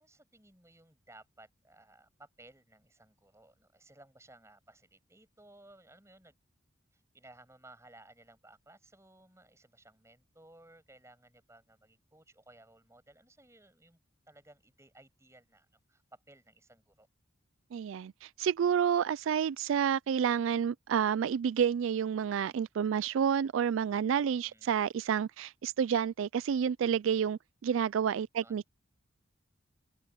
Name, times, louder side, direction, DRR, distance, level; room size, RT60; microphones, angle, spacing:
voice 1, 0.0-6.4 6.9-14.0 14.3-17.1 24.3-24.7 28.4-28.6, right 2 dB, 15° right, 7.8 m, -59 dB
voice 2, 17.7-28.7, right 8 dB, 75° right, 0.3 m, -29 dB
head